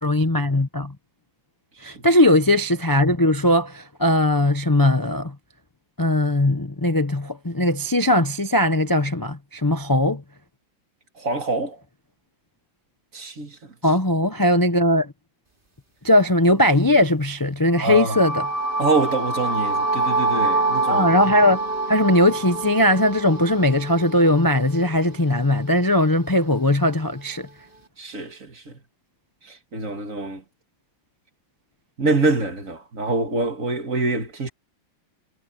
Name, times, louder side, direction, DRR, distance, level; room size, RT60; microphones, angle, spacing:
voice 1, 0.0-1.0 1.8-5.4 6.0-10.2 13.8-15.1 16.0-18.5 20.9-21.6 21.9-27.5, left 1 dB, 25° left, 0.4 m, -19 dB
voice 2, 11.2-11.8 13.1-13.7 17.8-18.2 18.8-21.1 28.0-28.8 29.4-30.4 32.0-34.5, right 3 dB, 40° right, 2.3 m, -25 dB
sound 1, 17.7-25.7, right 2 dB, 25° right, 2.9 m, -26 dB
omnidirectional pair, 2.2 m